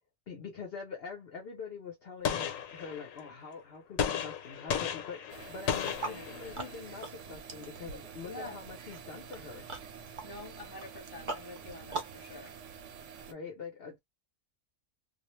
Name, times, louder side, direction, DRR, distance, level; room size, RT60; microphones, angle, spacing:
voice 1, 0.3-9.7 13.3-14.0, left 5 dB, 55° left, 0.8 m, -44 dB
Gunshot gunfire, 2.3-3.3 4.0-6.8, left 8 dB, 85° left, 1.1 m, -34 dB
sound 1, 5.3-13.3, right 6 dB, 70° right, 0.9 m, -48 dB
sound 2, 5.8-12.2, right 3 dB, 40° right, 0.4 m, -44 dB
voice 2, 6.0-6.4 8.2-8.6 10.2-12.6, left 2 dB, 20° left, 0.8 m, -46 dB
2.4 x 2.0 x 3.0 m
omnidirectional pair, 1.3 m